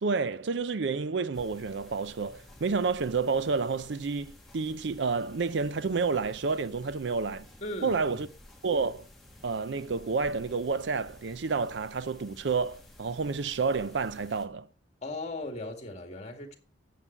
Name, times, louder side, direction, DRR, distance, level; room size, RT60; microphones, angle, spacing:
voice 1, 0.0-7.5 7.8-8.3 8.6-9.1 9.4-14.7, right 4 dB, 70° right, 0.5 m, -30 dB
sound 1, 1.3-14.5, left 1 dB, ahead, 1.8 m, -53 dB
voice 2, 7.6-8.3 15.0-16.6, left 1 dB, 35° left, 2.1 m, -38 dB
10.0 x 7.7 x 4.4 m
head